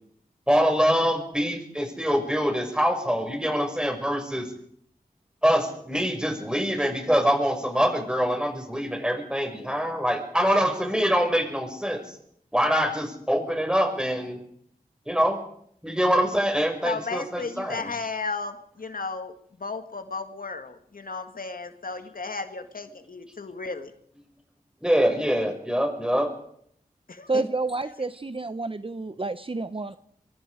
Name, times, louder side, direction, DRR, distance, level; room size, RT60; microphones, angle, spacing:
voice 1, 0.5-4.5 5.4-12.2 12.5-14.4 15.1-15.4 15.8-17.9 24.8-26.3, equal, 5° right, 4 dB, 6.1 m, -24 dB
voice 2, 16.8-19.3 19.6-23.9 27.1-27.4, left 4 dB, 70° left, 8 dB, 1.9 m, -34 dB
voice 3, 27.3-30.0, right 3 dB, 35° right, 12 dB, 0.9 m, -29 dB
24.5 x 23.5 x 5.0 m, 0.69 s
wide cardioid pair, 55°, 15 cm